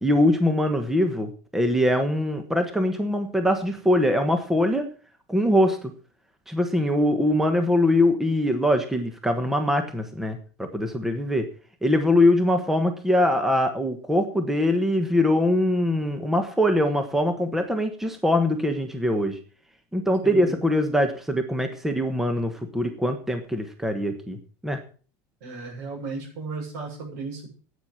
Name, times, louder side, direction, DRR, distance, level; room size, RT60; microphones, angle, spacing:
voice 1, 0.0-4.9 5.3-5.8 6.5-11.5 11.8-19.4 19.9-24.4 24.6-24.8, left 1 dB, 5° right, 7 dB, 1.2 m, -22 dB
voice 2, 20.2-20.6 25.4-27.5, right 4 dB, 70° right, 3 dB, 6.8 m, -35 dB
11.5 x 9.1 x 6.4 m, 0.41 s
supercardioid pair, 150°, 10 cm